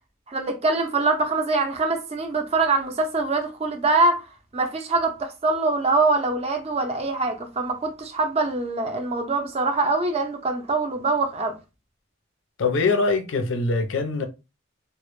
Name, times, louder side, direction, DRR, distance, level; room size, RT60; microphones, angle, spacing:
voice 1, 0.3-4.2 4.5-11.6, right 3 dB, 30° right, 0.4 m, -24 dB
voice 2, 12.6-14.2, left 3 dB, 70° left, 0.4 m, -23 dB
2.0 x 2.0 x 3.0 m
head